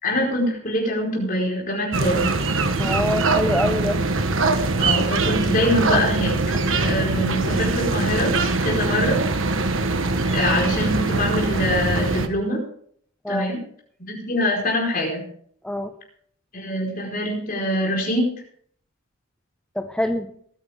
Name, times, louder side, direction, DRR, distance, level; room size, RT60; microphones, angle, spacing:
voice 1, 0.0-2.3 4.8-6.4 6.8-8.3 8.6-9.2 10.3-12.6 13.3-13.6 14.1-15.2 16.5-18.3, left 1 dB, 45° left, -1 dB, 4.7 m, -24 dB
sound 1, 1.9-12.3, right 3 dB, 70° right, 1.2 m, -22 dB
voice 2, 2.8-4.0 13.2-13.6 15.6-15.9 19.7-20.3, equal, 5° left, 6 dB, 0.6 m, -25 dB
21.5 x 9.5 x 3.6 m, 0.63 s
head